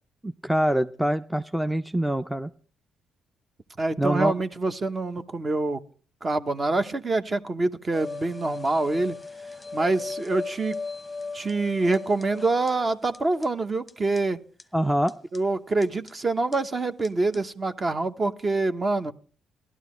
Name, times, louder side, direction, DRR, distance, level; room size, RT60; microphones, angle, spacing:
voice 1, 0.2-2.5 4.0-4.3 14.7-15.1, right 1 dB, 5° right, 9 dB, 0.5 m, -25 dB
voice 2, 3.8-5.8 6.2-9.2 9.7-10.8 11.3-14.4 15.3-19.1, right 2 dB, 30° right, 10 dB, 0.9 m, -26 dB
sound 1, 7.9-12.7 13.1-13.2 13.4-13.5 13.9-14.0 14.2-14.3 14.6-14.7 15.1-15.4 15.8-16.1 16.5-16.6 17.0-17.1 17.3-17.4, left 4 dB, 15° left, 0.9 m, -37 dB
16.5 x 12.0 x 3.1 m, 0.41 s
cardioid pair, 90°, 0 cm